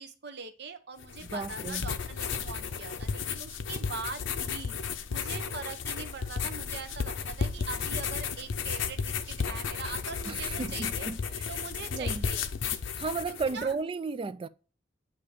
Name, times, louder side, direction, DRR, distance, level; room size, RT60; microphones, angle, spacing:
voice 1, 0.0-4.7 5.1-11.1 11.5-12.5 13.3-13.8, right 5 dB, 65° right, 0.8 m, -42 dB
sound 1, 1.0-13.7, left 6 dB, 85° left, 0.6 m, -34 dB
voice 2, 1.2-1.9 10.3-12.2 13.0-14.5, right 4 dB, 30° right, 0.3 m, -34 dB
8.5 x 2.9 x 4.9 m
head